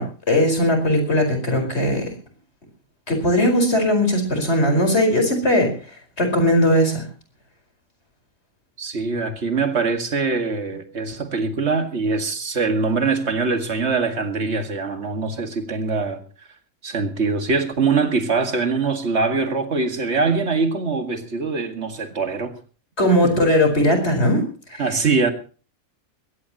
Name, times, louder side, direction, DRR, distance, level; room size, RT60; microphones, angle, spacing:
voice 1, 0.0-2.1 3.1-5.7 6.2-7.0 23.0-24.8, left 1 dB, 45° left, 5.1 m, -19 dB
voice 2, 8.8-16.2 16.8-22.5 23.2-23.4 24.8-25.3, right 4 dB, 50° right, 2.2 m, -23 dB
22.0 x 17.0 x 3.0 m
omnidirectional pair, 1.5 m